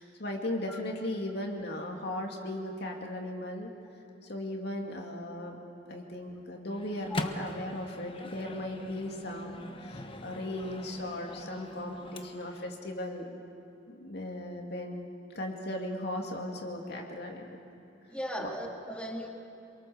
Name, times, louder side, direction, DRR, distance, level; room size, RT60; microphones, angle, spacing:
voice 1, 0.0-3.7 4.2-5.6 5.9-13.3 13.9-15.1 15.3-17.6 18.4-18.5, left 1 dB, 60° left, 1 dB, 2.6 m, -37 dB
Microwave oven, 6.7-12.7, left 1 dB, 30° left, 1.2 m, -42 dB
voice 2, 18.1-19.3, equal, 5° left, 0 dB, 2.6 m, -37 dB
28.5 x 23.0 x 7.0 m, 2.8 s
head